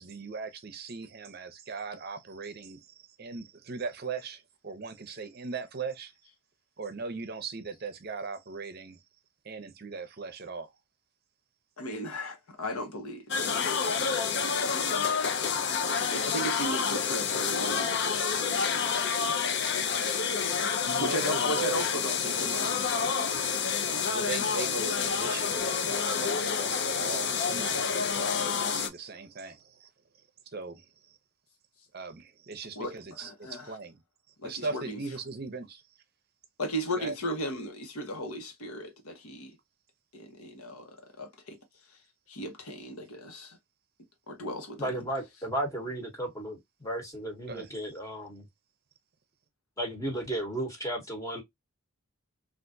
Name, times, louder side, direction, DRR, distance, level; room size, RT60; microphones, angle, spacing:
voice 1, 0.0-2.8 3.2-6.1 6.8-9.0 9.4-10.7 15.4-15.6 20.8-22.7 24.1-29.9 30.5-30.8 31.9-34.0 34.4-35.8 36.9-37.1 47.5-47.7, right 4 dB, 45° right, 0.6 m, -39 dB
voice 2, 11.8-14.2 14.6-15.5 15.9-20.0 20.5-23.1 32.7-33.8 34.4-35.0 36.6-39.6 40.1-41.6 42.3-43.6 44.3-44.9, equal, 90° left, 1.1 m, -37 dB
sound 1, 13.3-28.9, left 6 dB, 50° left, 0.5 m, -28 dB
voice 3, 44.8-48.4 49.8-51.4, right 1 dB, 15° left, 0.9 m, -34 dB
3.4 x 2.5 x 2.6 m
head